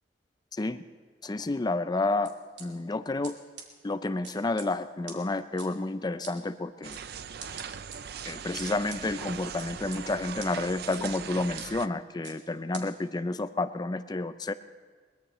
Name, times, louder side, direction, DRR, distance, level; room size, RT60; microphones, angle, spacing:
voice 1, 0.5-0.8 1.2-2.3 2.6-3.3 3.8-7.0 8.3-14.5, left 2 dB, 25° left, 12 dB, 0.5 m, -30 dB
sound 1, 2.2-2.6 3.2-3.3 3.6-3.7 4.2-4.7 5.1-5.2 5.6-5.7 6.2-6.3 6.9-7.0 7.4-8.0 8.6-9.0 9.6-10.0 10.4-10.5 10.9-11.0 11.6-11.7 12.2-12.4 12.7-12.8, right 6 dB, 80° right, 2.4 m, -43 dB
sound 2, 6.8-11.9, right 7 dB, 60° right, 0.5 m, -40 dB
22.0 x 21.0 x 3.1 m, 1.5 s
head